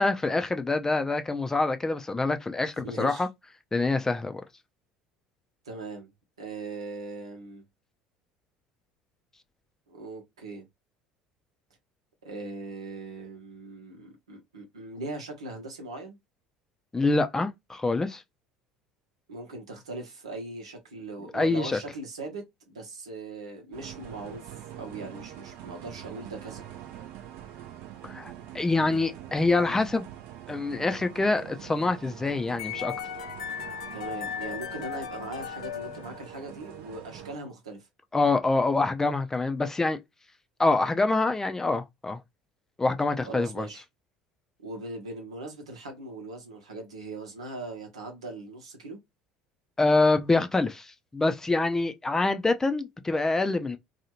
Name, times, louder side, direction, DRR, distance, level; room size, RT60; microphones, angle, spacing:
voice 1, 0.0-3.3 3.7-4.4 16.9-18.2 21.3-21.8 28.0-30.0 30.5-32.9 38.1-40.0 40.6-42.2 42.8-43.7 49.8-53.8, left 3 dB, 15° left, 0.4 m, -25 dB
voice 2, 2.8-3.3 5.6-6.1 6.4-7.6 9.9-10.6 12.2-16.2 19.3-26.6 33.9-37.9 43.2-43.8 44.6-49.0, right 2 dB, 85° right, 1.0 m, -40 dB
sound 1, 23.7-37.4, right 11 dB, 65° right, 0.6 m, -44 dB
sound 2, 32.6-36.7, left 9 dB, 80° left, 0.3 m, -37 dB
2.7 x 2.3 x 2.9 m
hypercardioid pair, 65°, 3 cm